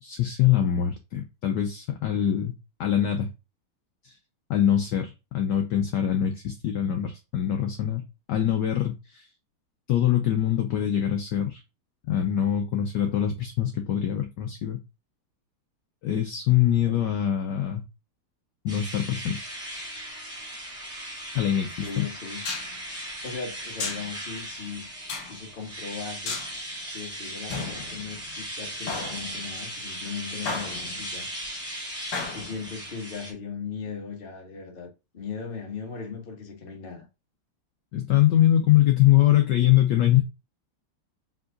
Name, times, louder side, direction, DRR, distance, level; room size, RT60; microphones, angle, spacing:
voice 1, 0.0-2.5 2.8-3.3 4.0-4.1 4.5-9.3 9.9-11.6 12.1-14.8 16.0-17.8 18.6-19.4 21.3-22.1 37.9-40.2, left 11 dB, 70° left, 1.0 m, -23 dB
sound 1, 18.7-33.3, right 1 dB, ahead, 1.2 m, -38 dB
sound 2, 21.3-21.4 22.5-22.8 23.8-24.1 25.1-25.4 26.3-26.6 27.5-28.4 28.9-29.6 30.5-31.1 32.1-32.7, left 4 dB, 55° left, 1.7 m, -34 dB
voice 2, 21.7-22.4 23.0-24.9 25.2-26.4 26.9-31.3 32.3-37.1, left 5 dB, 35° left, 1.0 m, -38 dB
4.7 x 3.8 x 2.5 m
omnidirectional pair, 2.4 m